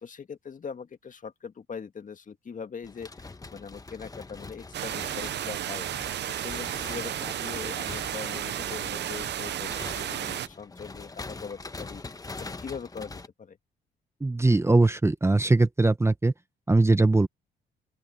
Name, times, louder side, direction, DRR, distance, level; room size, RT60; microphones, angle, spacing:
voice 1, 0.0-5.9 6.3-12.0 12.4-13.6, left 6 dB, 40° left, 1.8 m, -41 dB
sound 1, 2.8-13.3, left 3 dB, 20° left, 1.1 m, -43 dB
sound 2, 4.7-10.5, right 11 dB, 60° right, 0.7 m, -33 dB
voice 2, 14.2-16.3 16.7-17.3, right 2 dB, 15° right, 1.0 m, -21 dB
open air
cardioid pair, 90°, 20 cm